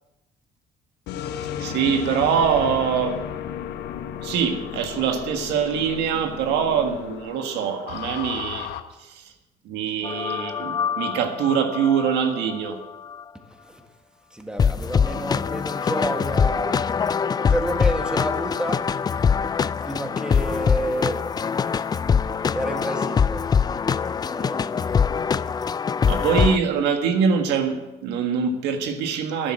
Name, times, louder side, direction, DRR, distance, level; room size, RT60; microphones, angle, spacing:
sound 1, 1.1-8.8, left 9 dB, 80° left, 1.2 m, -34 dB
voice 1, 1.6-3.2 4.2-8.7 9.1-9.2 9.7-12.8 26.1-29.5, right 7 dB, 90° right, 5 dB, 1.7 m, -23 dB
sound 2, 10.0-12.7 13.1-13.2 14.6-26.6, left 6 dB, 25° left, 0.4 m, -23 dB
voice 2, 14.3-16.8 17.4-18.9 19.8-21.2 22.5-23.5 24.3-24.8, right 1 dB, 5° right, 4 dB, 1.8 m, -29 dB
12.5 x 10.0 x 7.5 m, 1.0 s
cardioid pair, 110°, 17 cm